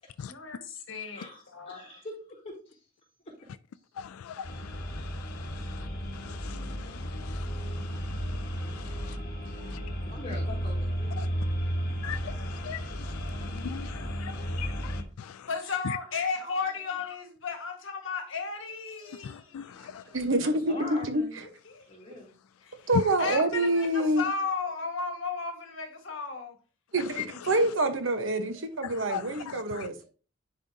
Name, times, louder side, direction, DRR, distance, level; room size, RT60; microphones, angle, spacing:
voice 1, 0.3-1.2 1.5-1.9 15.5-19.9 21.7-21.9 22.6-22.7 23.2-26.6, left 5 dB, 60° left, 1.5 m, -34 dB
voice 2, 1.1-2.8 3.2-3.3 5.6-5.7 8.9-9.2 9.5-12.3 13.6-15.3 15.6-15.8 16.3-16.8 19.0-21.4 21.9-22.4 28.4-29.6 29.9-30.1, left 1 dB, 30° left, 2.9 m, -47 dB
voice 3, 4.0-5.9 6.1-9.2 9.7-9.8 11.2-11.3 12.0-15.5 15.8-16.0 19.2-20.0 29.1-29.9, left 8 dB, 85° left, 0.3 m, -41 dB
sound 1, 4.4-15.0, equal, 45° left, 1.5 m, -34 dB
voice 4, 20.1-21.2 22.9-24.3 26.9-30.0, right 1 dB, 65° right, 1.1 m, -26 dB
10.5 x 4.9 x 2.7 m
head